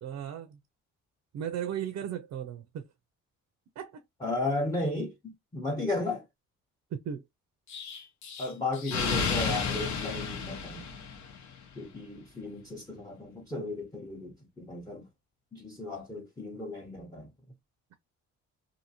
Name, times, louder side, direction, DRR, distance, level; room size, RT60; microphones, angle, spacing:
voice 1, 0.0-0.6 1.3-2.9 3.8-4.0 6.9-7.3, right 9 dB, 65° right, 0.6 m, -36 dB
voice 2, 4.2-5.1 5.5-6.2 8.4-10.9 11.7-15.1 15.5-17.3, left 2 dB, 10° left, 0.8 m, -34 dB
Explosion, 7.7-11.5, left 5 dB, 65° left, 0.9 m, -32 dB
2.7 x 2.7 x 2.8 m
cardioid pair, 90°, 30 cm